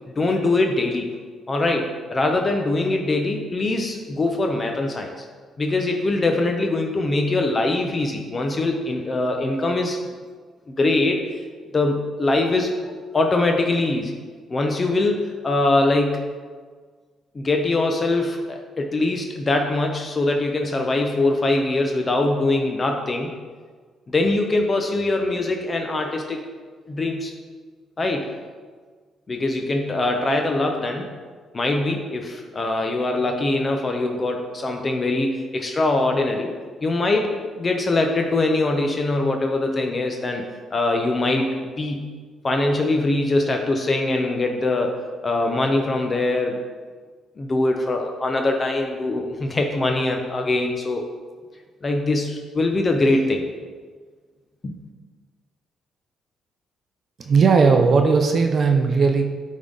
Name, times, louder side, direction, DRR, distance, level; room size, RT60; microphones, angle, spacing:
voice 1, 0.2-1.1 1.5-5.2 5.6-10.0 10.8-11.2 11.7-14.2 14.5-16.3 17.3-23.3 24.1-26.4 26.9-27.3 28.0-28.3 29.3-31.1 31.5-36.5 36.8-40.4 40.7-41.5 41.8-42.1 42.4-45.0 45.2-46.6 47.4-51.0 51.8-53.4 54.6-54.7, left 2 dB, 35° left, 3 dB, 0.7 m, -22 dB
voice 2, 57.2-59.2, right 5 dB, 50° right, 4 dB, 0.6 m, -17 dB
8.4 x 3.7 x 3.8 m, 1.5 s
cardioid pair, 90°, 0 cm